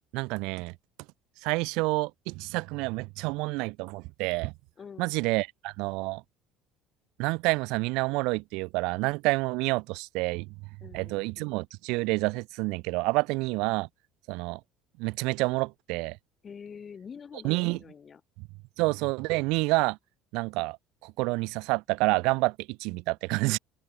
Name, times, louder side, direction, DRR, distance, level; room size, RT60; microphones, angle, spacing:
voice 1, 0.1-0.7 1.4-4.5 5.0-6.2 7.2-10.5 10.9-13.9 14.3-14.6 15.0-16.2 17.4-17.8 18.8-20.0 20.3-20.8 21.0-23.6, right 25 dB, 70° right, 1.1 m, -28 dB
voice 2, 4.8-5.1 10.8-11.5 16.4-18.2, left 6 dB, 20° left, 4.1 m, -46 dB
open air
cardioid pair, 175°, 0 cm